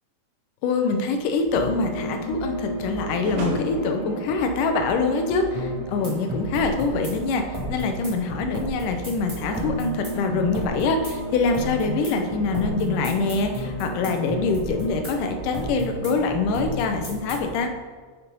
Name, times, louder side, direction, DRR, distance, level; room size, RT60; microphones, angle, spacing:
voice 1, 0.6-17.7, left 4 dB, 75° left, 5 dB, 2.2 m, -25 dB
sound 1, 1.3-5.9, right 2 dB, 60° right, 3.7 m, -36 dB
sound 2, 1.4-17.6, equal, 10° right, 1.8 m, -32 dB
7.0 x 6.9 x 5.4 m, 1.5 s
omnidirectional pair, 4.0 m